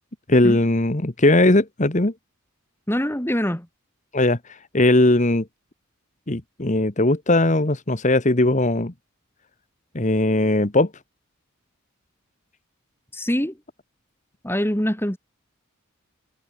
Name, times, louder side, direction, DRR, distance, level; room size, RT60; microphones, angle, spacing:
voice 1, 0.3-2.1 4.1-5.4 6.3-8.9 9.9-10.9, left 2 dB, 35° left, 1.4 m, -19 dB
voice 2, 2.9-3.7 13.1-13.6 14.4-15.2, equal, 10° left, 2.2 m, -24 dB
head